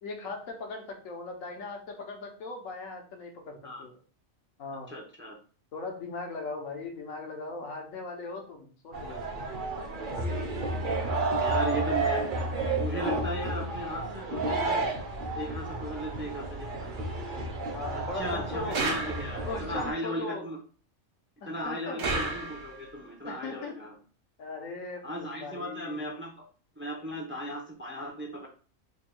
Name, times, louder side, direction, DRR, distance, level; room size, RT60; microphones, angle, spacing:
voice 1, 0.0-4.0 4.6-4.9 5.7-9.2 17.7-18.8 19.4-20.5 21.4-22.1 23.2-23.8 24.4-26.0, left 3 dB, 80° left, 2 dB, 1.3 m, -39 dB
voice 2, 4.9-5.4 11.4-12.3 12.8-14.9 15.3-17.2 17.9-20.6 21.5-23.9 25.0-26.5 26.8-28.5, equal, 20° right, 0 dB, 0.3 m, -37 dB
sound 1, 8.9-19.9, right 2 dB, 45° right, 0.8 m, -31 dB
sound 2, 18.7-19.6 22.0-22.9, right 2 dB, 75° right, 1.2 m, -32 dB
3.5 x 2.3 x 4.3 m, 0.40 s
omnidirectional pair, 1.4 m